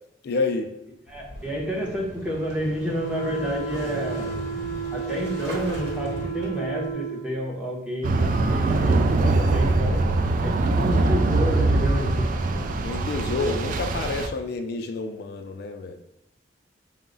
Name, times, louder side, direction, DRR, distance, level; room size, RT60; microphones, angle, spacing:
voice 1, 0.2-0.7 12.8-16.0, left 3 dB, 60° left, 5 dB, 0.3 m, -29 dB
voice 2, 1.1-4.3 4.9-10.0 10.4-12.3 12.5-12.6, equal, 5° right, -3 dB, 0.8 m, -29 dB
Motorcycle / Engine starting, 1.1-6.9, equal, 65° right, 1.1 m, -38 dB
sound 1, 3.0-7.2, right 5 dB, 90° right, 0.9 m, -32 dB
sound 2, 8.0-14.3, right 2 dB, 45° right, 0.3 m, -22 dB
4.5 x 2.0 x 3.8 m, 0.86 s
head